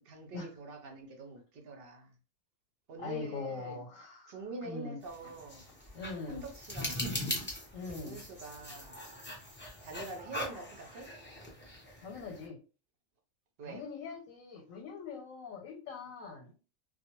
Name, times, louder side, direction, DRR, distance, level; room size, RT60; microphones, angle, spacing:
voice 1, 0.0-2.2 2.9-3.8 4.3-5.6 6.3-7.4 7.9-9.0 9.8-11.1 13.6-13.8, right 2 dB, 60° right, 0.6 m, -45 dB
voice 2, 3.0-4.3 4.6-5.0 5.9-6.4 7.7-8.2 12.0-12.6 13.7-16.5, left 4 dB, 85° left, 1.1 m, -42 dB
sound 1, 5.0-12.5, left 1 dB, 20° left, 0.3 m, -41 dB
2.3 x 2.1 x 2.9 m
omnidirectional pair, 1.4 m